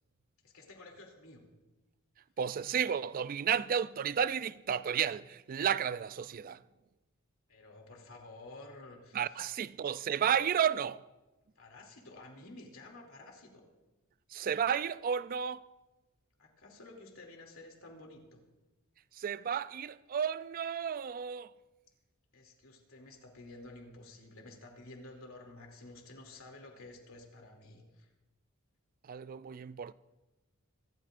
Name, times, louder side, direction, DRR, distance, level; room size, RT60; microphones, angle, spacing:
voice 1, 0.4-1.4 7.5-9.4 11.6-13.6 16.4-18.4 22.3-28.1, left 2 dB, 75° left, 2.7 m, -52 dB
voice 2, 2.4-6.6 9.1-11.0 14.3-15.7 19.1-21.5 29.0-29.9, right 8 dB, 40° right, 0.3 m, -32 dB
25.5 x 12.5 x 2.5 m
head